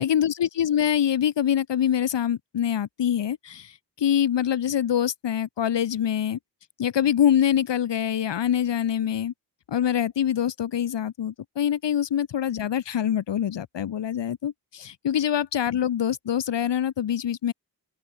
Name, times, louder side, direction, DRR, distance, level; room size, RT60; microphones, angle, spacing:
voice 1, 0.0-6.4 6.8-9.3 9.7-17.5, left 9 dB, 75° left, 0.9 m, -25 dB
open air
cardioid pair, 40°, 43 cm